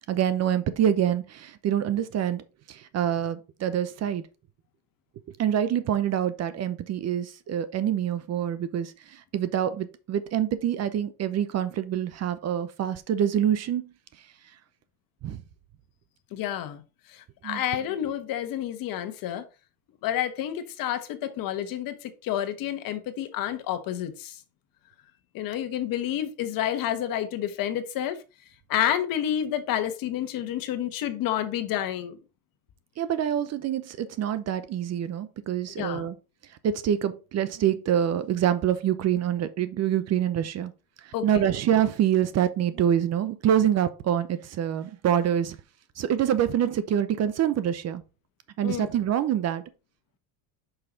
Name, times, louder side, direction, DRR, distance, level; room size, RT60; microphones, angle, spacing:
voice 1, 0.1-4.2 5.4-13.9 14.2-14.3 15.2-15.4 17.4-17.6 33.0-36.2 36.5-40.7 41.0-45.6 46.0-48.0 48.6-49.6, right 10 dB, 40° right, 0.7 m, -26 dB
voice 2, 16.3-16.8 17.1-19.5 20.0-24.4 25.3-28.2 28.7-32.2 35.8-36.1 41.1-41.4 48.6-48.9, left 11 dB, 50° left, 1.2 m, -29 dB
5.8 x 5.6 x 3.8 m
supercardioid pair, 120°, 42 cm